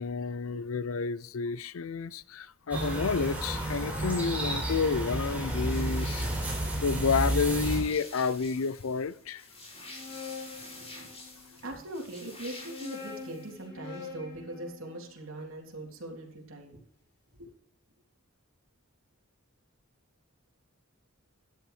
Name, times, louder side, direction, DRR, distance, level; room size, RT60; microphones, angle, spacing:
voice 1, 0.0-6.3 6.8-9.4, left 5 dB, 85° left, 0.6 m, -30 dB
sound 1, 2.7-7.8, right 1 dB, 10° right, 4.5 m, -31 dB
sound 2, 5.4-13.6, left 2 dB, 30° left, 5.9 m, -48 dB
sound 3, 9.7-11.6 12.4-16.5, left 5 dB, 60° left, 4.8 m, -46 dB
voice 2, 10.6-11.1 11.5-16.8 17.4-17.5, right 1 dB, 80° right, 3.2 m, -41 dB
13.5 x 11.0 x 3.3 m
head